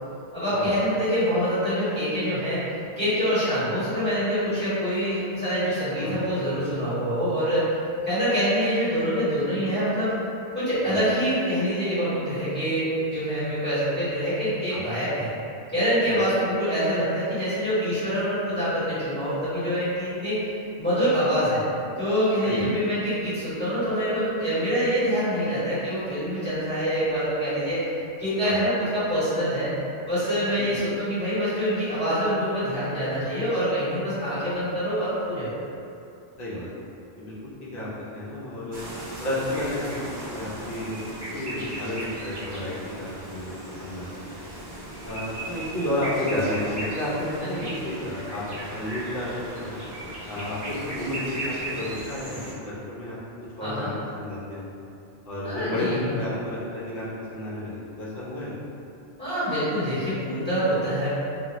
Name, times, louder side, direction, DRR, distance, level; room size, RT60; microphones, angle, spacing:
voice 1, 0.3-2.6 3.0-7.7 8.0-10.1 10.5-15.3 15.7-20.4 20.8-21.6 22.0-27.8 28.2-29.7 30.0-35.5 47.4-47.7 53.6-53.9 55.4-56.2 59.2-61.1, equal, 10° left, -16 dB, 1.4 m, -25 dB
voice 2, 36.4-36.7 37.2-37.9 38.1-38.8 39.2-41.1 41.3-44.1 45.0-49.8 50.3-53.2 53.6-54.7 55.3-58.5, left 1 dB, 60° left, -8 dB, 0.9 m, -31 dB
sound 1, 38.7-52.5, right 1 dB, 30° right, 0.5 m, -36 dB
2.5 x 2.5 x 3.0 m, 2.7 s
omnidirectional pair, 1.1 m